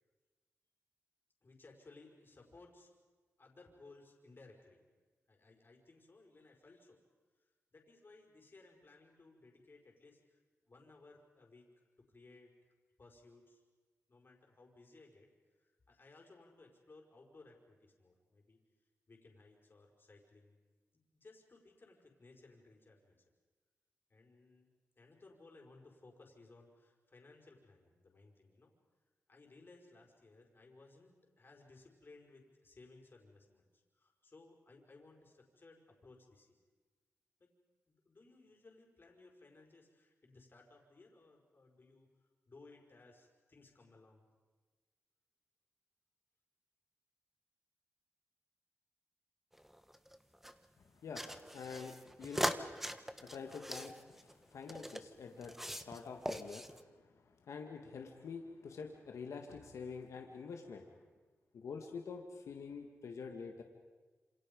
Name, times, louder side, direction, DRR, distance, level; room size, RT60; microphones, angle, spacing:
voice 1, 1.4-3.0 3.4-4.9 5.3-7.0 7.7-11.7 12.1-12.5 13.0-13.6 14.1-15.3 15.6-18.6 19.1-20.5 20.9-23.2 24.1-24.7 25.0-28.7 29.3-36.6 37.4-37.5 37.9-42.1 42.5-44.3, left 3 dB, 45° left, 1 dB, 5.3 m, -61 dB
sound 1, 49.5-50.5 51.1-55.0 55.4-56.0 56.3-56.8, equal, 5° right, 1.4 m, -41 dB
voice 2, 50.9-61.0 61.5-63.6, left 5 dB, 85° left, 3 dB, 1.9 m, -47 dB
28.0 x 27.0 x 5.4 m, 1.3 s
cardioid pair, 65°, 5 cm